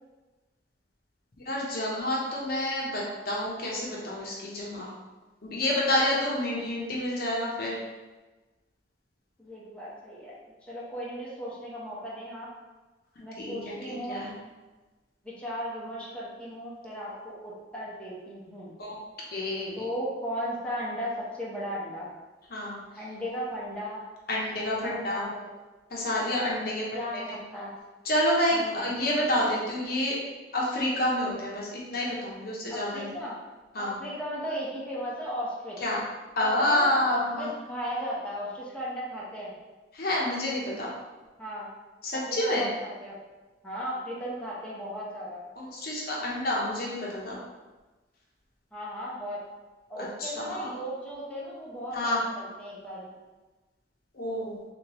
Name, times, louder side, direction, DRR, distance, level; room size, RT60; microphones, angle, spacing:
voice 1, 1.5-4.9 5.4-7.8 13.4-14.3 18.8-19.0 19.3-19.8 22.5-22.8 24.3-25.2 25.9-26.9 27.1-27.4 28.0-30.1 30.5-33.2 33.7-34.0 35.8-36.0 36.4-37.5 39.9-40.9 42.0-42.7 45.6-47.4 50.2-50.7 51.9-52.2 54.1-54.5, left 1 dB, 55° left, -4 dB, 0.8 m, -28 dB
voice 2, 9.4-10.3 10.7-12.5 13.2-14.2 15.2-18.7 19.8-22.1 23.0-24.0 24.6-25.4 26.9-27.7 28.5-28.9 32.7-33.4 33.8-35.8 36.4-39.5 41.4-41.7 42.1-43.1 43.6-45.4 48.7-49.4 49.9-53.1, equal, 5° left, -8 dB, 0.9 m, -36 dB
3.6 x 3.4 x 3.0 m, 1.2 s
head